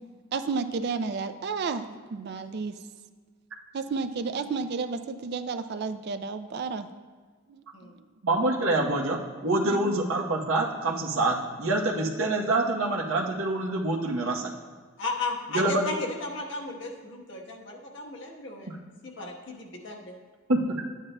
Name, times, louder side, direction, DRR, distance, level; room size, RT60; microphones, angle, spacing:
voice 1, 0.3-2.8 3.7-6.9 9.7-9.9, right 4 dB, 55° right, 10 dB, 0.4 m, -31 dB
voice 2, 8.2-14.5 15.5-15.9 18.7-18.8 20.5-20.8, right 2 dB, 85° right, 0 dB, 0.9 m, -26 dB
voice 3, 15.0-18.7 19.0-20.2, left 2 dB, 60° left, 0 dB, 1.1 m, -35 dB
12.0 x 9.2 x 2.2 m, 1.5 s
head